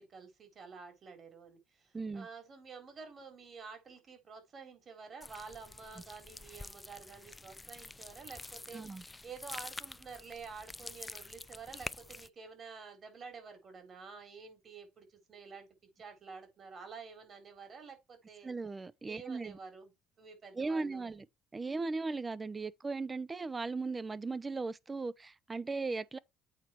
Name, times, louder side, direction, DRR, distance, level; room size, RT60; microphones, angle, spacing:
voice 1, 0.0-15.7 16.0-18.5 19.1-19.9 20.2-21.1, right 5 dB, 45° right, 3.8 m, -50 dB
voice 2, 1.9-2.3 8.7-9.0 18.4-19.6 20.6-21.2 21.5-26.2, right 3 dB, 25° right, 0.7 m, -37 dB
sound 1, 5.2-12.3, left 2 dB, 15° left, 0.4 m, -47 dB
8.3 x 4.3 x 4.6 m
supercardioid pair, 85°, 0 cm